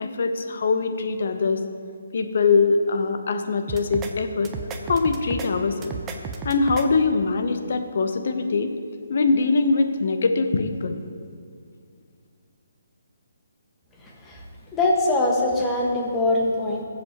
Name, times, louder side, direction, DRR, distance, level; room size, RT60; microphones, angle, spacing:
voice 1, 0.0-1.6 2.1-4.5 4.9-6.0 6.4-8.7 9.1-11.0, left 4 dB, 60° left, 7 dB, 0.9 m, -22 dB
sound 1, 3.7-4.1 4.4-5.5 5.8-6.8, right 5 dB, 15° right, 0.8 m, -33 dB
voice 2, 14.7-16.8, left 2 dB, 15° left, -2 dB, 1.6 m, -22 dB
18.5 x 7.5 x 3.1 m, 2.2 s
hypercardioid pair, 150°, 0 cm